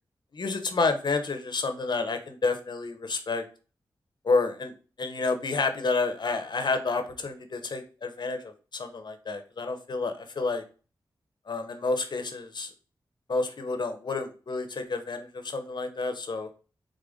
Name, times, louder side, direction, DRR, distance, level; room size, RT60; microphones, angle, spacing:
voice 1, 0.3-3.4 4.2-4.7 5.0-10.6 11.5-12.7 13.3-16.5, left 3 dB, 55° left, 8 dB, 0.7 m, -29 dB
3.8 x 2.4 x 3.5 m, 0.36 s
cardioid pair, 50°, 9 cm